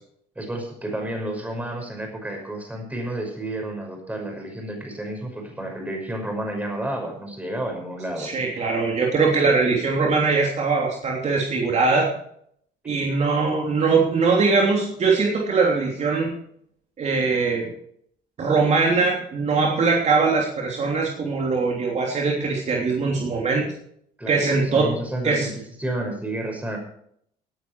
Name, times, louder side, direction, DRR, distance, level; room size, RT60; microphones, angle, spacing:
voice 1, 0.4-8.3 24.2-25.5 25.8-26.8, right 1 dB, 10° right, 2 dB, 5.7 m, -31 dB
voice 2, 8.2-12.1 12.8-16.3 17.0-17.7 18.4-23.7 24.3-24.9 25.2-25.5, right 4 dB, 40° right, -1 dB, 3.2 m, -21 dB
18.0 x 10.0 x 4.8 m, 0.68 s
cardioid pair, 110°, 17 cm